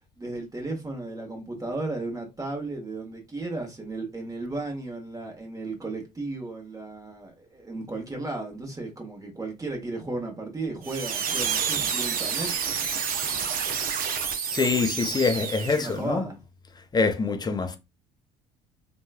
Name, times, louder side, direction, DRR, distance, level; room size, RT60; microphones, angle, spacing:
voice 1, 0.2-12.5 15.6-16.4, right 2 dB, 15° right, 1.1 m, -34 dB
sound 1, 10.8-16.0, right 7 dB, 45° right, 0.6 m, -29 dB
voice 2, 14.5-16.3 16.9-17.8, left 4 dB, 20° left, 0.5 m, -25 dB
3.0 x 2.2 x 2.3 m
hypercardioid pair, 60°, 20 cm